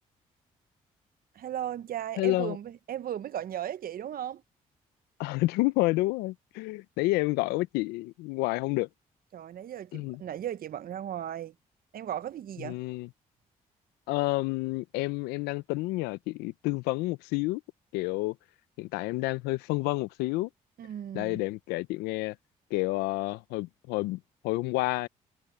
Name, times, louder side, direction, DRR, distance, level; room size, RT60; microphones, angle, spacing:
voice 1, 1.3-4.4 9.3-11.5 11.9-12.8 20.8-21.4, right 10 dB, 65° right, 1.1 m, -36 dB
voice 2, 2.2-2.6 5.2-8.9 9.9-10.2 12.6-13.1 14.1-17.6 17.9-18.4 18.8-20.5 21.1-22.4 22.7-25.1, left 21 dB, 85° left, 0.7 m, -29 dB
supercardioid pair, 55°, 16 cm